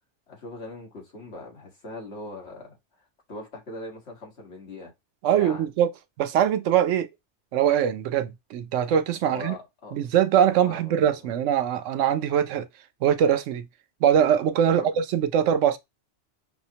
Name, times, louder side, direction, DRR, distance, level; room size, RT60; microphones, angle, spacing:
voice 1, 0.3-2.8 3.3-4.9 5.3-5.6 9.3-10.0 10.6-11.3 14.6-14.9, left 2 dB, 65° left, 1.7 m, -40 dB
voice 2, 5.2-5.9 6.2-7.1 7.5-9.6 9.9-12.6 13.0-13.6 14.0-15.8, right 9 dB, 90° right, 0.9 m, -22 dB
5.5 x 2.1 x 2.7 m
omnidirectional pair, 1.2 m